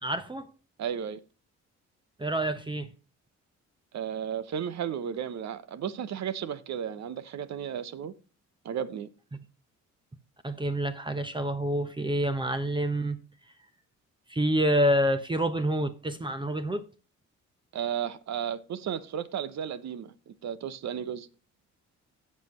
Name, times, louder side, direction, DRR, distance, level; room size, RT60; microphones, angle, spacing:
voice 1, 0.0-0.5 2.2-2.9 10.4-13.2 14.3-16.8, right 1 dB, 15° right, 0.9 m, -27 dB
voice 2, 0.8-1.2 3.9-8.1 8.6-9.1 17.7-21.3, right 8 dB, 65° right, 1.0 m, -34 dB
17.0 x 5.7 x 3.1 m
cardioid pair, 90°, 30 cm